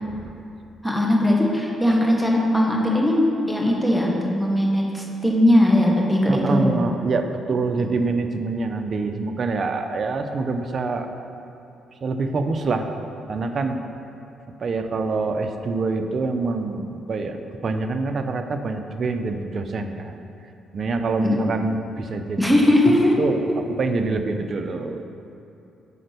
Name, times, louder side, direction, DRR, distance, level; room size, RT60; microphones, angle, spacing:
voice 1, 0.8-6.8 21.2-21.4 22.4-23.1, left 1 dB, ahead, -2 dB, 1.4 m, -19 dB
voice 2, 6.3-11.1 12.0-12.9 13.3-13.8 14.6-20.1 20.7-22.4 22.9-25.1, right 3 dB, 50° right, 6 dB, 0.6 m, -26 dB
8.4 x 4.4 x 6.7 m, 2.8 s
cardioid pair, 90°, 0 cm